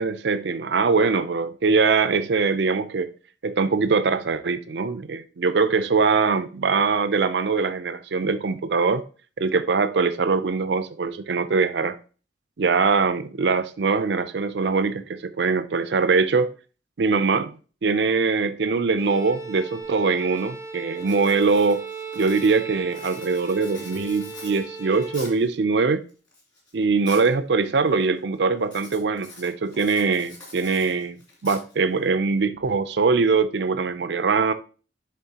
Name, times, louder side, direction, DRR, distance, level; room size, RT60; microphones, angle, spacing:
voice 1, 0.0-3.1 3.4-9.0 9.4-12.0 12.6-16.5 17.0-17.5 17.8-21.9 22.2-26.0 26.7-31.2 31.4-34.5, right 4 dB, 70° right, 0.5 m, -22 dB
Bowed string instrument, 19.0-25.3, right 5 dB, 20° right, 0.6 m, -37 dB
Writing, 19.8-19.9 20.4-20.6 21.0-25.5 26.1-27.3 27.6-28.0 28.6-32.0, left 2 dB, 20° left, 2.3 m, -45 dB
11.0 x 3.7 x 2.8 m
head